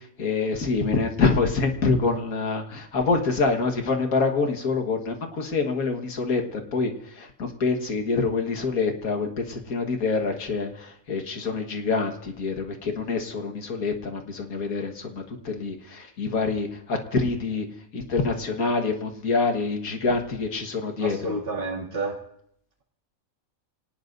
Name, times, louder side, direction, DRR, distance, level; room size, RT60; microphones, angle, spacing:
voice 1, 0.2-17.7 17.9-21.4, left 4 dB, 85° left, 4 dB, 2.0 m, -26 dB
voice 2, 21.0-22.2, right 3 dB, 40° right, -3 dB, 2.7 m, -30 dB
26.5 x 18.5 x 2.7 m, 0.71 s
omnidirectional pair, 1.5 m